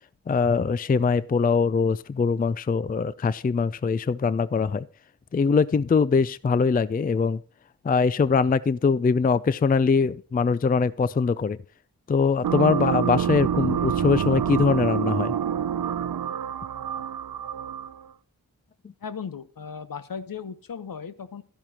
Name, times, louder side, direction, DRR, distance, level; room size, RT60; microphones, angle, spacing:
voice 1, 0.3-4.9 5.3-7.4 7.8-11.6 12.1-15.3, left 5 dB, 25° left, 18 dB, 0.4 m, -22 dB
sound 1, 12.4-18.1, right 8 dB, 70° right, 0.6 m, -27 dB
voice 2, 19.0-21.4, left 6 dB, 65° left, 13 dB, 1.0 m, -36 dB
12.5 x 11.0 x 2.9 m, 0.43 s
cardioid pair, 50°, 36 cm